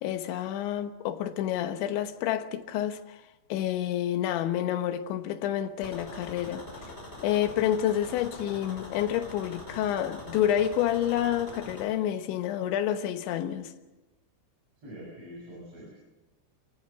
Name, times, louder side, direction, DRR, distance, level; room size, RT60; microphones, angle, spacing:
voice 1, 0.0-3.2 3.5-6.9 7.2-13.7, left 11 dB, 80° left, 3.4 m, -29 dB
sound 1, 5.8-11.8, left 2 dB, 15° left, 5.1 m, -43 dB
voice 2, 14.8-15.9, equal, 35° right, 8.0 m, -44 dB
29.0 x 16.0 x 6.8 m
omnidirectional pair, 5.4 m